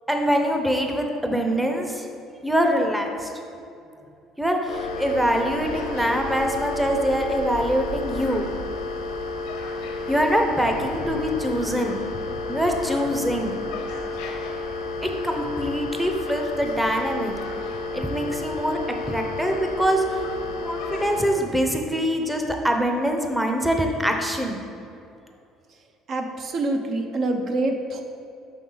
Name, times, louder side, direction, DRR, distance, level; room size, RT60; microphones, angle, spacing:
voice 1, 0.1-2.0 2.4-3.3 4.4-8.5 10.1-12.1 12.5-13.5 15.0-17.3 17.9-20.0 20.6-24.6, equal, 5° right, 3 dB, 0.7 m, -24 dB
sound 1, 4.7-21.3, left 3 dB, 80° left, 0.8 m, -31 dB
voice 2, 26.1-28.0, right 2 dB, 55° right, 4 dB, 0.7 m, -26 dB
5.8 x 5.5 x 3.9 m, 2.6 s
supercardioid pair, 85°, 0 cm